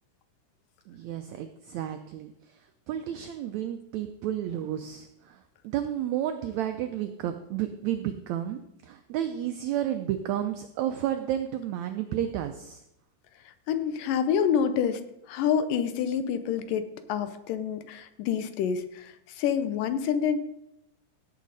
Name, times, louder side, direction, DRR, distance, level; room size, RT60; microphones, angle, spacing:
voice 1, 0.9-2.6 2.9-12.8, right 11 dB, 85° right, 8 dB, 1.6 m, -32 dB
voice 2, 13.7-15.0 15.3-20.4, left 8 dB, 80° left, 11 dB, 2.4 m, -27 dB
16.5 x 7.5 x 4.0 m, 0.84 s
omnidirectional pair, 3.9 m